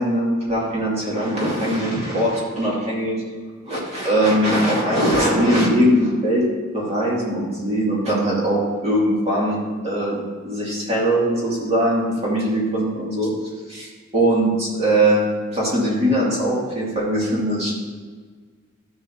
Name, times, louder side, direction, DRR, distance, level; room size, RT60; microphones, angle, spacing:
voice 1, 0.0-3.2 3.6-6.5 6.7-9.6 9.8-10.2 10.4-13.3 13.7-15.2 15.5-17.8, right 1 dB, 35° right, -5 dB, 2.6 m, -21 dB
12.5 x 6.9 x 2.9 m, 1.5 s
head